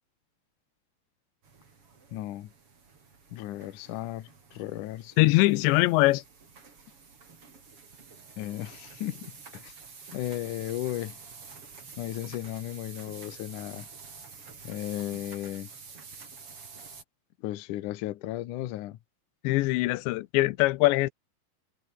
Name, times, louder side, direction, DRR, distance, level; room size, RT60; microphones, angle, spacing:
sound 1, 1.4-17.0, right 5 dB, 35° right, 4.4 m, -49 dB
voice 1, 2.1-2.5 3.3-5.3 8.4-9.7 10.1-11.2 12.0-13.9 14.6-15.7 17.4-19.0, left 14 dB, 70° left, 2.0 m, -35 dB
voice 2, 5.2-6.2 19.4-21.1, left 19 dB, 85° left, 3.1 m, -22 dB
omnidirectional pair, 5.0 m